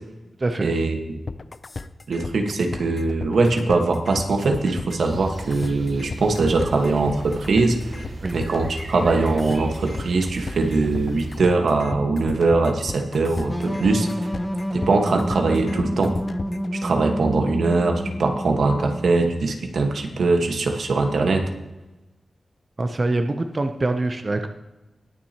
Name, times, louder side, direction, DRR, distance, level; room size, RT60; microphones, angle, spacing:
voice 1, 0.6-1.2 2.1-8.1 8.3-14.1 14.7-16.2 16.7-21.5, right 3 dB, 85° right, 3 dB, 1.3 m, -21 dB
sound 1, 1.3-16.7, left 4 dB, 40° left, 0.4 m, -34 dB
sound 2, 5.0-11.4, right 2 dB, 55° right, 1.3 m, -36 dB
sound 3, 13.5-19.1, equal, ahead, 0.8 m, -28 dB
voice 2, 22.8-24.5, right 2 dB, 30° right, 6 dB, 0.6 m, -24 dB
20.5 x 7.4 x 2.9 m, 1.1 s
wide cardioid pair, 160°, 0 cm